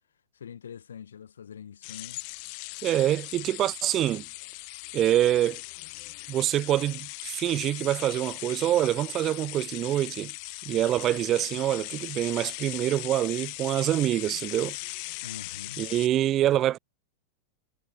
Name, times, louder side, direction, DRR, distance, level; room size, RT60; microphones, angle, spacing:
voice 1, 0.3-2.2 15.2-15.9, left 8 dB, 65° left, 4.8 m, -44 dB
sound 1, 1.8-16.1, left 40 dB or more, 45° left, 0.3 m, -39 dB
voice 2, 2.8-4.2 4.9-5.6 6.3-10.3 10.7-14.8 15.8-16.8, right 12 dB, 30° right, 0.3 m, -25 dB
figure-of-eight pair, 90°, 0 cm